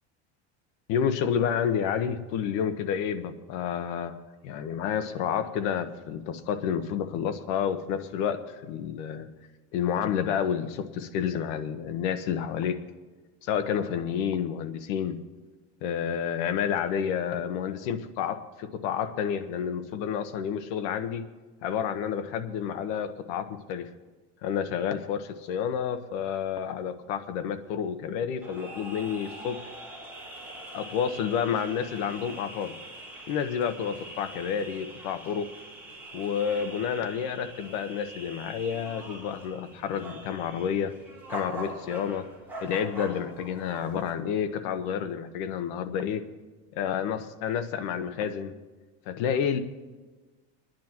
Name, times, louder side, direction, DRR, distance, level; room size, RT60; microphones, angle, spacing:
voice 1, 0.9-4.2 4.4-9.3 9.7-12.8 13.4-15.2 15.8-21.2 21.6-23.9 24.4-29.6 30.5-32.7 33.3-35.5 36.1-40.9 41.3-42.3 42.6-46.2 46.7-48.5 49.1-49.6, left 8 dB, 75° left, 9 dB, 1.2 m, -30 dB
sound 1, 28.4-44.1, right 1 dB, 5° right, 4.6 m, -43 dB
27.0 x 10.5 x 3.0 m, 1.3 s
supercardioid pair, 135°, 36 cm